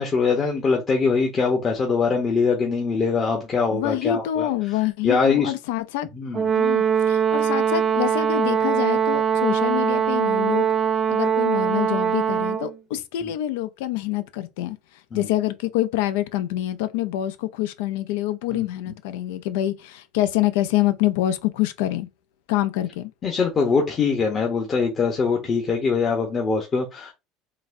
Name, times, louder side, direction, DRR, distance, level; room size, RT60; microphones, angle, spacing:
voice 1, 0.0-4.5 5.0-5.5 6.1-6.5 15.1-15.3 18.5-18.6 23.2-27.1, left 5 dB, 35° left, 0.8 m, -22 dB
voice 2, 3.7-6.1 6.5-10.7 11.1-14.8 15.1-22.1 22.5-23.1, left 14 dB, 80° left, 0.4 m, -26 dB
Brass instrument, 6.3-12.7, right 8 dB, 35° right, 0.3 m, -22 dB
3.9 x 2.2 x 2.6 m
supercardioid pair, 100°, 0 cm